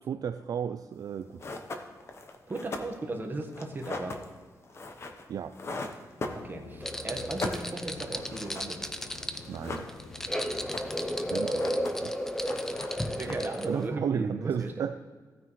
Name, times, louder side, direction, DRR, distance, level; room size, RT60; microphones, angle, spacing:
voice 1, 0.1-1.5 5.3-5.6 9.5-9.9 11.2-12.2 13.3-13.4 13.7-15.0, right 7 dB, 55° right, 9 dB, 0.3 m, -33 dB
sound 1, 1.0-1.1 1.4-6.9 7.2-9.0 9.3-10.3 10.5-11.1 11.4-12.2 12.4-13.6, left 2 dB, 40° left, 0.9 m, -39 dB
voice 2, 2.5-4.1 6.3-8.8 10.9-11.6 13.1-14.9, right 2 dB, 25° right, 2 dB, 1.3 m, -37 dB
sound 2, 6.2-11.4, left 4 dB, 75° left, 0.9 m, -48 dB
sound 3, 6.8-13.9, equal, 5° left, 0.5 m, -33 dB
16.0 x 9.2 x 3.1 m, 1.5 s
wide cardioid pair, 155°, 7 cm